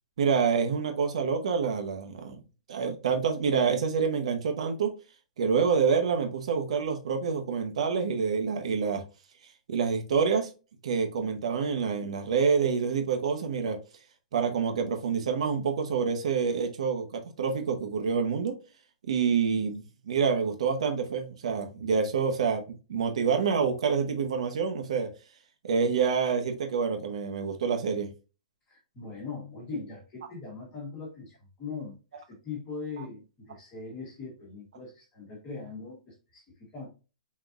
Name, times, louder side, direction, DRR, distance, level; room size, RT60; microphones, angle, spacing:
voice 1, 0.2-2.4 2.7-5.0 5.4-9.0 9.7-10.5 10.8-13.8 14.3-18.6 19.0-25.1 25.6-28.1 33.0-33.1, right 6 dB, 55° right, 0.8 m, -27 dB
voice 2, 28.7-32.0 32.3-36.9, left 4 dB, 15° left, 1.3 m, -40 dB
4.1 x 3.9 x 2.4 m
hypercardioid pair, 180°, 4 cm